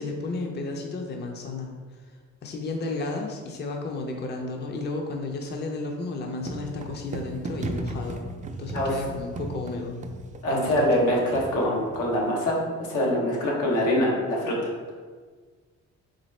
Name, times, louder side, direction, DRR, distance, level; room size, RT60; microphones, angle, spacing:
voice 1, 0.0-1.7 2.4-8.3 8.6-10.0 10.5-10.9, left 3 dB, 35° left, 2 dB, 0.5 m, -33 dB
sound 1, 6.4-12.2, right 2 dB, 25° right, 0.3 m, -36 dB
voice 2, 10.4-14.6, equal, 85° left, -3 dB, 1.1 m, -24 dB
3.9 x 3.4 x 3.2 m, 1.5 s
cardioid pair, 90°, 30 cm